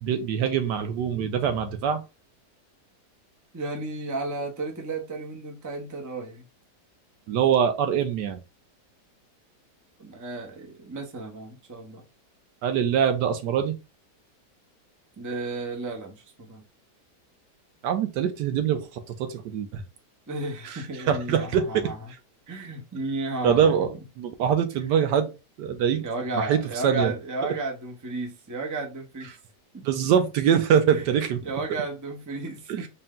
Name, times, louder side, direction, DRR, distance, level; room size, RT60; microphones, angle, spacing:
voice 1, 0.0-2.0 7.3-8.4 12.6-13.7 17.8-18.8 19.2-19.8 21.1-21.8 23.4-23.9 24.2-25.3 25.6-26.0 26.4-27.1 29.8-31.4, right 8 dB, 85° right, 1.3 m, -23 dB
voice 2, 3.5-6.5 10.0-12.0 15.2-16.6 20.3-22.0 22.5-23.7 23.9-24.0 24.8-24.9 26.0-29.4 29.7-29.8 30.9-31.1 31.4-32.9, right 2 dB, 20° right, 0.4 m, -33 dB
4.2 x 2.2 x 3.6 m
omnidirectional pair, 1.8 m